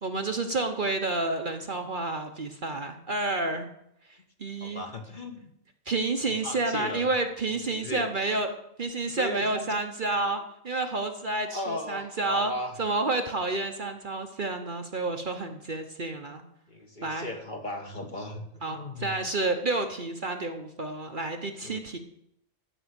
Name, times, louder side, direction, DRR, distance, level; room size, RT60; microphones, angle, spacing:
voice 1, 0.0-3.7 4.1-4.8 5.9-8.5 8.8-12.5 12.8-16.4 17.0-17.3 18.6-22.0, right 2 dB, 45° right, 5 dB, 1.0 m, -30 dB
voice 2, 4.6-5.5 6.3-7.0 7.7-8.1 9.2-9.8 11.5-12.8 16.7-19.2 21.6-21.8, left 1 dB, 40° left, 4 dB, 1.5 m, -36 dB
14.0 x 5.6 x 8.0 m, 0.78 s
omnidirectional pair, 1.3 m